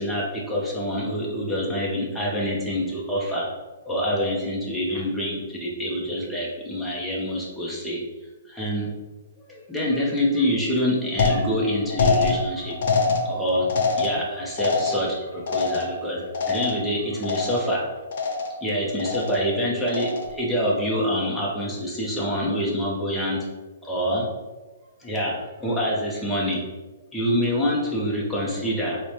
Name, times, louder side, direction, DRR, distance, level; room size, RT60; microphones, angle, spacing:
voice 1, 0.0-3.5 3.9-8.0 8.5-8.9 9.5-12.8 13.2-13.7 14.0-16.2 16.5-17.9 18.6-23.5 23.8-24.3 25.0-26.6 27.1-29.0, equal, 5° left, -6 dB, 0.6 m, -26 dB
sound 1, 11.2-17.0 17.2-17.8 18.1-18.7 19.0-19.5 19.9-20.4, left 4 dB, 55° left, 0.5 m, -25 dB
3.2 x 2.1 x 4.1 m, 1.2 s
hypercardioid pair, 165°, 0 cm